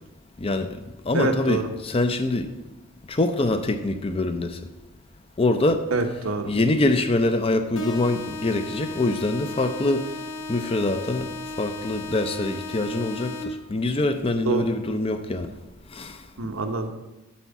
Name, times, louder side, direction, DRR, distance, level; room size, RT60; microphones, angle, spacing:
voice 1, 0.4-0.8 1.0-2.5 3.1-4.6 5.4-5.9 6.4-10.1 10.5-11.3 11.6-15.5 15.9-16.2, left 2 dB, 25° left, 0.5 m, -24 dB
voice 2, 1.1-1.6 5.9-6.5 14.5-14.6 16.4-16.9, right 2 dB, 70° right, 0.9 m, -25 dB
sound 1, 7.8-13.8, left 2 dB, 70° left, 0.8 m, -35 dB
8.5 x 4.5 x 7.1 m
head